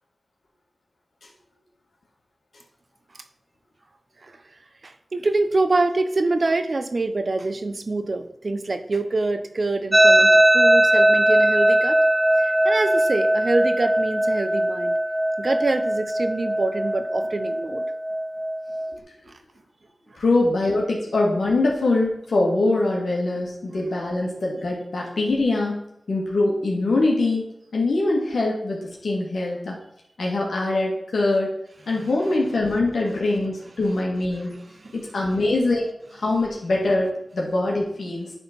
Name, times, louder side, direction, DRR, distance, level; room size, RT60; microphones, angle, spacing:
voice 1, 4.8-12.0 12.4-14.9 15.4-17.8 34.8-34.9, right 2 dB, 55° right, 9 dB, 0.8 m, -25 dB
sound 1, 9.9-19.0, right 1 dB, 10° right, 0.7 m, -20 dB
voice 2, 20.2-29.8 30.2-31.5 31.9-34.6 34.9-38.3, left 2 dB, 90° left, -2 dB, 1.9 m, -23 dB
10.0 x 3.9 x 5.9 m, 0.76 s
cardioid pair, 55°, 0 cm